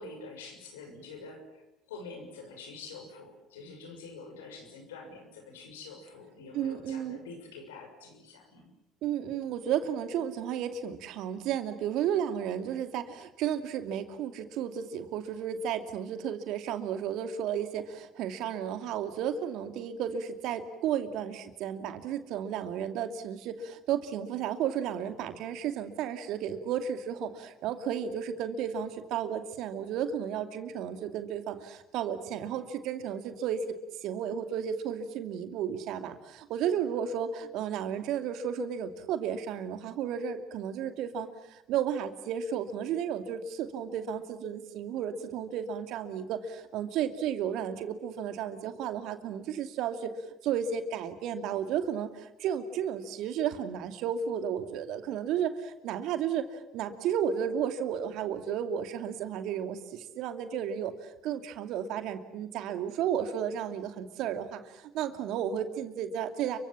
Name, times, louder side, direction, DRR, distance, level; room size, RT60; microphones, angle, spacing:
voice 1, 0.0-1.6 1.9-8.7, left 3 dB, 85° left, 5 dB, 6.3 m, -46 dB
voice 2, 6.5-7.2 9.0-33.6 34.0-50.1 50.4-66.6, right 9 dB, 65° right, 8 dB, 2.6 m, -33 dB
29.5 x 24.5 x 7.4 m, 0.88 s
hypercardioid pair, 60°, 0 cm